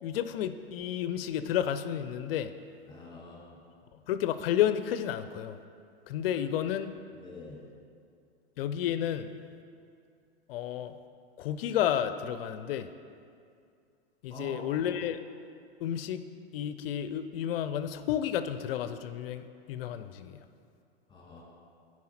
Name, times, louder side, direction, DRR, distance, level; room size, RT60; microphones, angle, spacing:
voice 1, 0.0-2.5 4.1-5.6 6.1-6.9 8.6-9.3 10.5-10.9 11.4-12.9 14.2-15.2 15.8-16.2 16.5-20.4, left 10 dB, 60° left, 11 dB, 0.5 m, -31 dB
voice 2, 2.9-3.6 6.3-6.7 7.1-7.6 14.3-14.7 21.1-21.4, left 2 dB, 15° left, -3 dB, 1.7 m, -45 dB
9.3 x 4.7 x 4.2 m, 2.4 s
hypercardioid pair, 110°, 33 cm